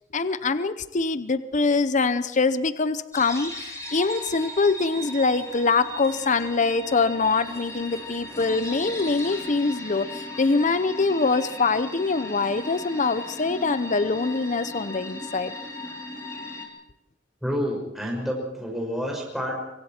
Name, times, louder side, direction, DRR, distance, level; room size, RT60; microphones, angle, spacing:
voice 1, 0.1-15.5, left 4 dB, 40° left, 13 dB, 0.7 m, -24 dB
sound 1, 3.1-16.7, left 1 dB, 15° left, 4.0 m, -37 dB
voice 2, 17.4-19.6, equal, ahead, -2 dB, 5.6 m, -29 dB
25.5 x 24.5 x 4.4 m, 0.88 s
head